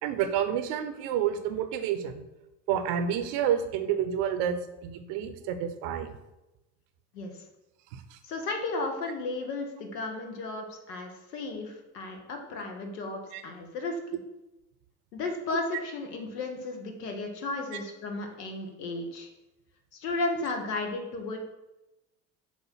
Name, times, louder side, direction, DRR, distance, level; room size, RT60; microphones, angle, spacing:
voice 1, 0.0-2.2 2.7-6.1 7.9-8.2 13.3-13.4 15.5-15.6 17.7-17.8, right 9 dB, 55° right, 9 dB, 0.8 m, -29 dB
voice 2, 8.2-14.0 15.1-19.3 19.9-21.4, left 3 dB, 75° left, 3 dB, 1.1 m, -34 dB
7.3 x 2.5 x 5.5 m, 0.98 s
figure-of-eight pair, 60°, 49 cm